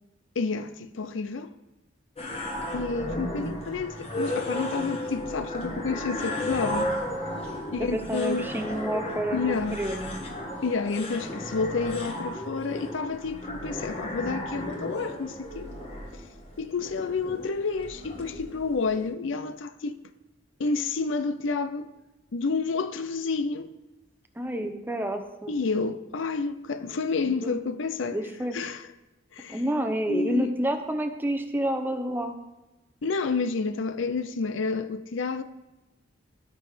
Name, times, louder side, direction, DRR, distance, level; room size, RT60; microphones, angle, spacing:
voice 1, 0.4-1.5 2.7-6.9 7.7-8.5 9.3-9.8 10.6-15.7 16.1-16.2 16.6-20.0 20.6-21.9 22.3-23.7 25.5-28.2 28.5-28.9 29.3-29.6 30.1-30.5 33.0-35.4, left 4 dB, 75° left, 0.6 m, -29 dB
sound 1, 2.2-19.1, left 1 dB, 30° left, 1.9 m, -34 dB
voice 2, 7.7-10.2 24.4-25.5 27.3-27.5 28.1-28.6 29.5-32.4, equal, 10° right, 0.8 m, -29 dB
12.0 x 6.3 x 5.0 m
head